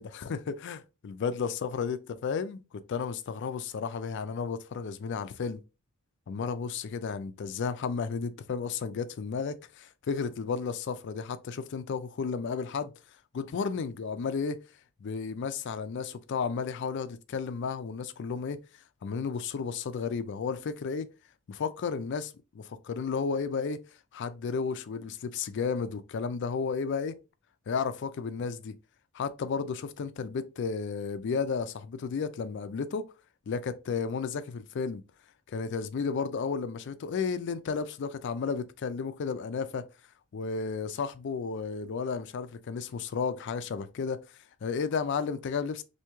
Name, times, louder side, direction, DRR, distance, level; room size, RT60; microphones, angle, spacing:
voice 1, 0.0-2.0 2.2-2.6 2.9-5.6 6.3-12.9 13.3-14.6 15.0-18.6 19.0-21.1 21.5-23.8 24.1-27.2 27.7-28.7 29.1-33.1 33.5-35.0 35.5-39.9 40.3-45.8, left 5 dB, 55° left, 0.4 m, -33 dB
3.0 x 2.7 x 3.3 m
head